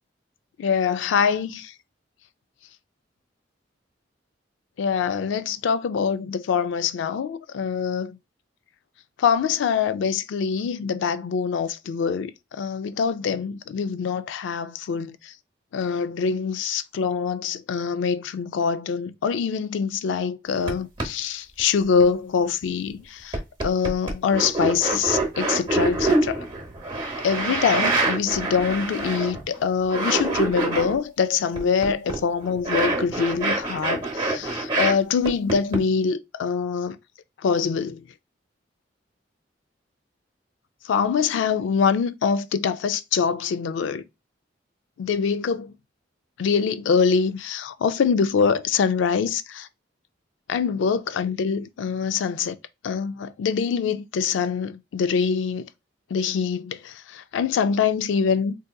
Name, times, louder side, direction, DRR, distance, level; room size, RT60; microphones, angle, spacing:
voice 1, 0.6-1.7 4.8-8.2 9.2-15.3 15.7-26.5 27.2-37.0 37.4-38.0 40.9-44.0 45.0-45.7 46.4-49.7 50.5-52.6 52.8-55.7 56.1-58.6, left 6 dB, 80° left, 0.3 m, -24 dB
sound 1, 20.7-20.8 21.0-21.1 21.6-22.0 22.6-22.7 23.3-29.6 29.8-31.0 31.5-34.9 35.3-35.8, right 2 dB, 25° right, 0.8 m, -25 dB
3.7 x 2.7 x 2.2 m
head